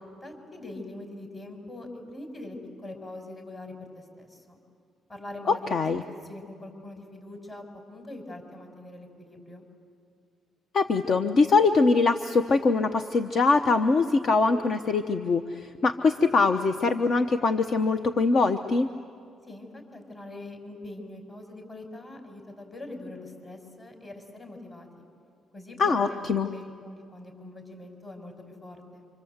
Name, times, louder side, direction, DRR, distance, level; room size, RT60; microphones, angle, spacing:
voice 1, 0.1-4.6 5.1-5.7 6.2-9.6 19.5-24.9 25.5-29.1, left 2 dB, 30° left, 4 dB, 5.3 m, -43 dB
voice 2, 5.5-6.0 10.7-18.9 25.8-26.5, left 4 dB, 55° left, 8 dB, 0.9 m, -23 dB
27.0 x 25.0 x 8.0 m, 2.3 s
cardioid pair, 90°, 0 cm